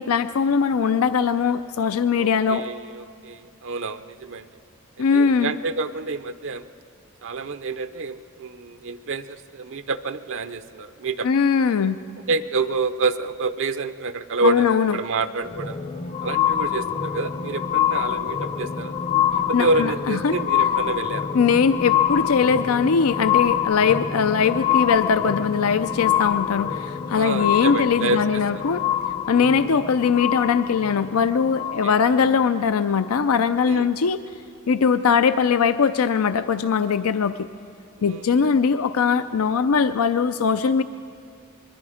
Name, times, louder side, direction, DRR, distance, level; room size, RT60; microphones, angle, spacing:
voice 1, 0.0-2.6 5.0-5.5 11.2-12.0 14.4-15.0 19.5-20.4 21.3-28.8 29.3-34.2 34.7-37.5 38.0-40.8, left 6 dB, 75° left, 11 dB, 0.5 m, -21 dB
voice 2, 2.2-4.5 5.1-6.7 7.2-11.3 12.2-15.8 16.2-19.0 19.5-21.3 27.1-28.6 29.3-29.5 31.8-32.0 33.6-33.9 38.0-38.5, right 3 dB, 60° right, 10 dB, 0.6 m, -28 dB
sound 1, 15.4-32.3 33.0-33.1, left 9 dB, 30° left, 0.7 m, -25 dB
26.0 x 21.5 x 5.0 m, 2.4 s
head